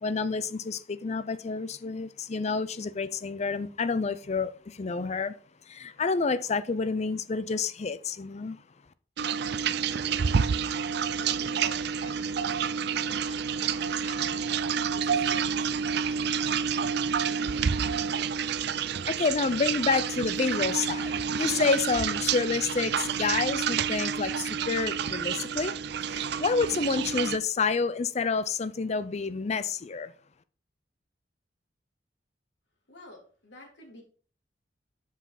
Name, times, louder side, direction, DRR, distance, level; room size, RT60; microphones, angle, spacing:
voice 1, 0.0-5.3 5.7-8.6 18.4-18.5 19.0-25.7 26.1-30.1, left 4 dB, 40° left, 0.5 m, -29 dB
sound 1, 9.2-27.4, right 7 dB, 65° right, 0.4 m, -29 dB
voice 2, 10.8-14.5 14.9-16.0 32.9-34.0, left 1 dB, 80° left, 2.8 m, -51 dB
7.5 x 5.6 x 4.0 m
head